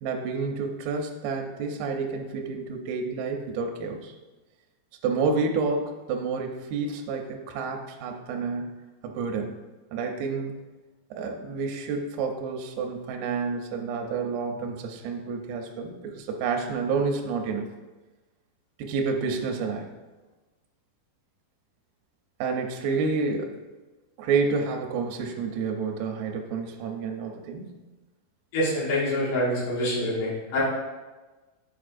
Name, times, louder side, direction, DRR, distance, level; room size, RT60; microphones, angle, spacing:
voice 1, 0.0-4.1 5.0-8.8 9.0-9.5 9.9-10.5 11.1-17.7 18.8-19.9 22.4-23.6 24.2-27.8, right 4 dB, 80° right, 3 dB, 2.2 m, -29 dB
voice 2, 28.5-30.6, left 1 dB, 55° left, -7 dB, 2.9 m, -26 dB
8.1 x 4.8 x 2.5 m, 1.2 s
omnidirectional pair, 5.0 m